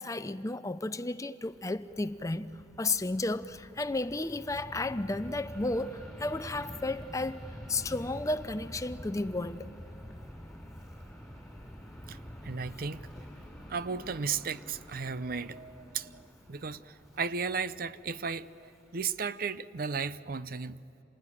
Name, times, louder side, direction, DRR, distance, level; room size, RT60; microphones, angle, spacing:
voice 1, 0.0-9.7 13.2-13.3 16.1-16.2, left 2 dB, 20° left, 0.6 m, -33 dB
Fixed-wing aircraft airplane, 1.4-19.2, equal, ahead, 4.4 m, -48 dB
voice 2, 12.4-13.0 13.7-16.1 16.5-20.8, right 5 dB, 50° right, 0.6 m, -35 dB
27.5 x 20.5 x 9.9 m
head